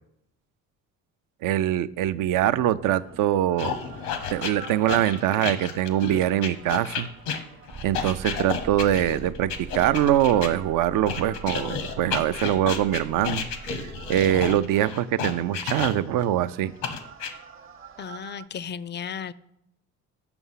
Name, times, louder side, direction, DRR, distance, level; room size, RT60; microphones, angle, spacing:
voice 1, 1.4-3.8 4.3-7.1 7.8-13.4 13.7-16.7, right 12 dB, 65° right, 14 dB, 0.5 m, -23 dB
sound 1, 2.0-18.5, right 4 dB, 35° right, 0.8 m, -44 dB
sound 2, 3.6-10.5 11.1-16.2 16.8-17.3, left 6 dB, 90° left, 0.9 m, -32 dB
voice 2, 18.0-19.3, left 7 dB, 30° left, 18 dB, 0.4 m, -34 dB
7.0 x 5.8 x 5.6 m, 0.80 s
supercardioid pair, 70°, 35 cm